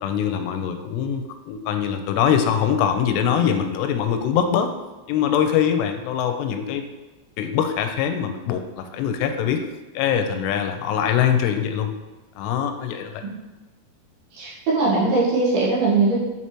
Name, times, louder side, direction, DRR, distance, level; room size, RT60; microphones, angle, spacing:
voice 1, 0.0-4.7 5.1-6.8 7.4-9.6 10.0-11.9 12.4-13.2, left 8 dB, 90° left, 6 dB, 2.7 m, -23 dB
voice 2, 14.3-16.2, right 3 dB, 70° right, -6 dB, 3.0 m, -20 dB
7.4 x 4.3 x 3.0 m, 1.2 s
omnidirectional pair, 4.8 m